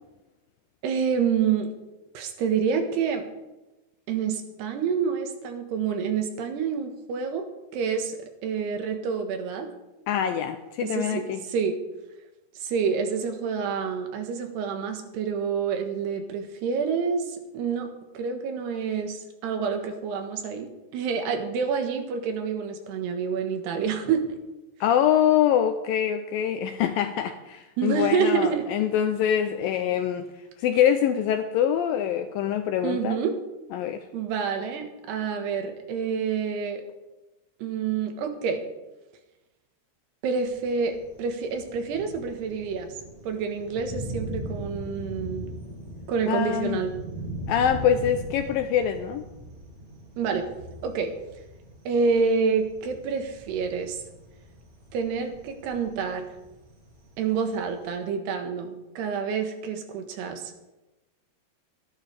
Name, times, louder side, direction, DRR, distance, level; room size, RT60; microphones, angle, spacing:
voice 1, 0.8-1.7 2.2-3.2 4.1-7.5 7.7-9.7 10.8-11.8 12.6-17.9 18.2-24.4 27.8-28.6 32.8-33.4 34.1-36.8 37.6-38.6 40.2-42.9 43.2-45.5 46.1-46.9 50.2-50.5 50.8-51.1 51.9-54.0 54.9-56.3 57.2-60.6, right 6 dB, 85° right, 5 dB, 3.5 m, -28 dB
voice 2, 10.1-11.4 24.8-30.3 30.6-33.2 33.7-34.0 46.3-46.8 47.5-49.2, left 9 dB, 85° left, 8 dB, 2.1 m, -24 dB
Thunder, 40.5-58.0, right 1 dB, 45° right, 1.1 m, -40 dB
22.5 x 11.5 x 3.5 m, 1.0 s
omnidirectional pair, 4.7 m